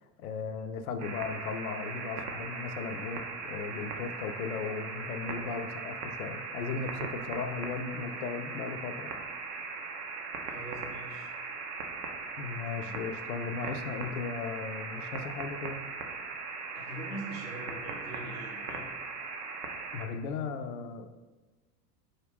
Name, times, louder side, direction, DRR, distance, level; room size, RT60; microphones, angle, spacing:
voice 1, 0.2-9.1 12.4-15.8 19.9-21.1, left 5 dB, 60° left, 8 dB, 0.5 m, -36 dB
sound 1, 1.0-20.1, right 4 dB, 75° right, 0.7 m, -39 dB
voice 2, 10.4-11.3 12.8-13.1 16.7-18.9, right 1 dB, 90° right, -6 dB, 1.1 m, -43 dB
4.0 x 2.5 x 3.4 m, 1.2 s
figure-of-eight pair, 80°, 49 cm